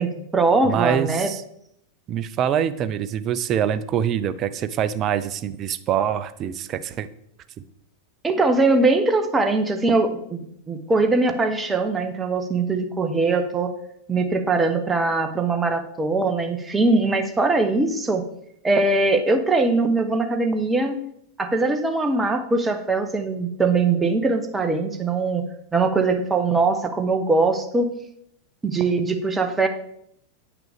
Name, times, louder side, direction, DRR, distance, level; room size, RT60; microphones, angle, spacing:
voice 1, 0.0-1.3 8.2-13.7 14.1-18.2 18.6-21.0 21.4-25.4 25.7-27.9 28.6-29.7, right 3 dB, 10° right, 6 dB, 0.9 m, -21 dB
voice 2, 0.6-1.4 2.1-7.1, right 9 dB, 35° right, 13 dB, 0.5 m, -24 dB
8.8 x 5.9 x 3.5 m, 0.72 s
figure-of-eight pair, 90°, 0 cm